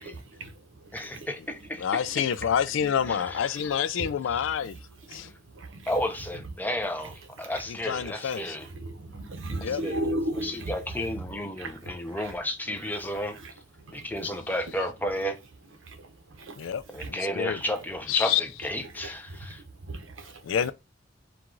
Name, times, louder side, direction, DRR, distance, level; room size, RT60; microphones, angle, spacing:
voice 1, 0.0-1.3 2.8-3.1 3.7-4.1 5.1-5.9 7.4-7.6 8.4-10.7 11.0-11.1 11.6-12.3 12.9-13.0 13.3-13.5 13.8-14.3 15.8-17.1 19.0-20.6, right 1 dB, 90° right, 0.9 m, -37 dB
voice 2, 0.9-2.3 3.1-3.6 4.3-4.4 5.2-5.3 5.9-8.7 9.7-10.0 10.4-13.4 13.9-15.4 16.9-19.6, left 1 dB, 10° left, 0.6 m, -32 dB
voice 3, 1.8-4.8 5.1-5.3 7.7-8.6 9.6-9.8 16.6-16.8 17.1-17.6 18.1-18.4 20.4-20.7, left 8 dB, 75° left, 0.4 m, -27 dB
4.6 x 2.4 x 3.8 m
head